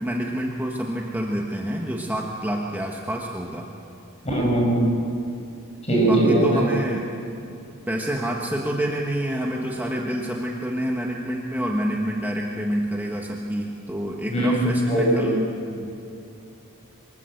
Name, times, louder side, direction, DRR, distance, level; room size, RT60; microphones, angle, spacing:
voice 1, 0.0-3.7 6.0-7.1 7.9-15.9, equal, 10° right, -1 dB, 1.4 m, -28 dB
voice 2, 4.3-4.9 5.9-6.7 14.3-15.3, right 1 dB, 30° left, -2 dB, 6.9 m, -20 dB
24.5 x 20.0 x 7.9 m, 2.5 s
head